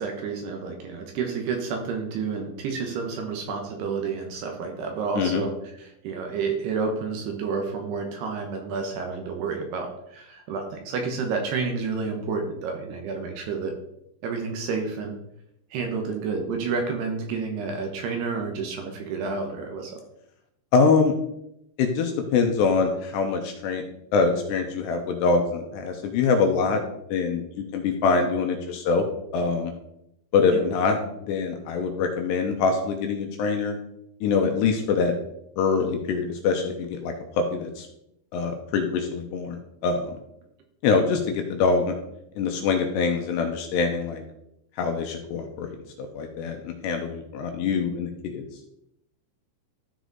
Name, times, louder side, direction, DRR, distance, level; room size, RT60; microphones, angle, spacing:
voice 1, 0.0-5.5 5.8-13.7 14.2-15.1 15.7-20.0 30.5-30.6 40.9-41.0, right 5 dB, 70° right, 3 dB, 2.7 m, -30 dB
voice 2, 20.7-21.1 21.8-23.8 24.1-26.8 27.1-29.0 29.3-29.7 30.3-33.8 34.2-35.1 35.6-37.9 38.3-40.1 40.8-41.9 42.4-44.2 44.8-48.4, left 5 dB, 80° left, 4 dB, 2.7 m, -24 dB
13.5 x 4.9 x 4.0 m, 0.79 s
omnidirectional pair, 5.5 m